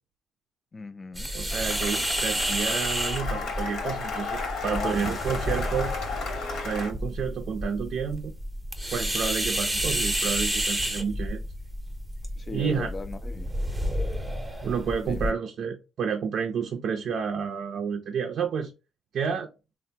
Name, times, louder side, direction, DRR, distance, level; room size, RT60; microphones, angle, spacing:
voice 1, 0.7-1.3 4.7-5.8 12.4-13.5 15.0-15.4, left 3 dB, 35° left, 0.3 m, -39 dB
sound 1, 1.2-15.3, equal, 10° right, 0.6 m, -30 dB
voice 2, 1.3-5.9 6.6-8.3 8.9-11.4 12.5-12.9 14.6-18.7 19.1-19.5, right 6 dB, 65° right, 0.4 m, -30 dB
Cheering / Applause, 1.5-6.9, left 4 dB, 75° left, 0.9 m, -33 dB
3.2 x 2.0 x 2.7 m
cardioid pair, 90°, 0 cm